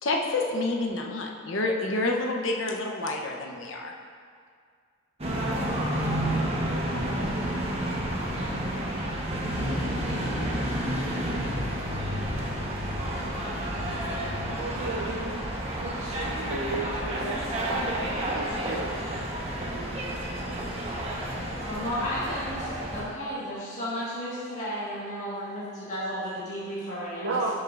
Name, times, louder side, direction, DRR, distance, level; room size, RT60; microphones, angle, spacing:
voice 1, 0.0-3.9, left 2 dB, 85° left, 1 dB, 0.9 m, -28 dB
sound 1, 5.2-23.0, right 1 dB, 30° right, 1.1 m, -30 dB
voice 2, 14.4-15.3 15.8-19.1 27.2-27.5, right 3 dB, 85° right, -3 dB, 0.7 m, -33 dB
voice 3, 21.2-27.5, equal, 35° left, -10 dB, 1.8 m, -34 dB
11.5 x 6.5 x 2.6 m, 2.1 s
head